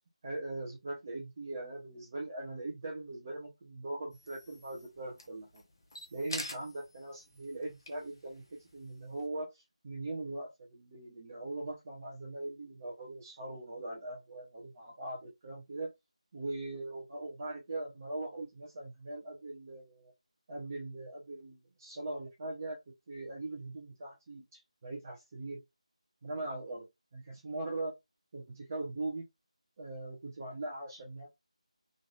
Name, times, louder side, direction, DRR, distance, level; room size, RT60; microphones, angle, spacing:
voice 1, 0.2-5.6 6.1-15.9 16.3-20.1 20.5-22.8 23.1-25.6 26.2-26.9 27.1-27.9 28.3-29.2 29.8-31.3, right 2 dB, 25° right, 0.7 m, -41 dB
sound 1, 4.1-9.2, left 2 dB, 35° left, 0.7 m, -47 dB
3.1 x 2.5 x 2.4 m
figure-of-eight pair, 165°, 4 cm